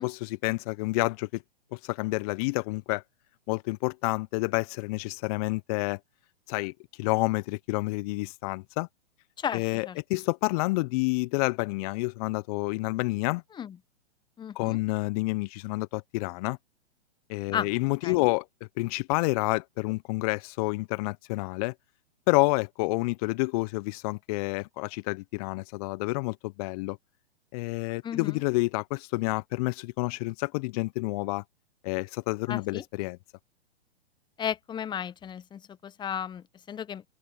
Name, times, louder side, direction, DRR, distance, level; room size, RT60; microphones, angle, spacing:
voice 1, 0.0-1.4 1.7-3.0 3.5-6.0 6.5-6.7 7.0-8.9 9.5-13.4 14.5-16.6 17.3-18.4 18.8-21.7 22.3-27.0 27.5-31.4 31.8-33.2, left 24 dB, 35° left, 1.1 m, -29 dB
voice 2, 9.4-10.0 13.5-13.8 14.4-14.8 17.5-17.7 18.0-18.3 28.0-28.4 32.5-32.8 34.4-37.0, left 8 dB, 15° left, 1.2 m, -34 dB
open air
figure-of-eight pair, 120°, 33 cm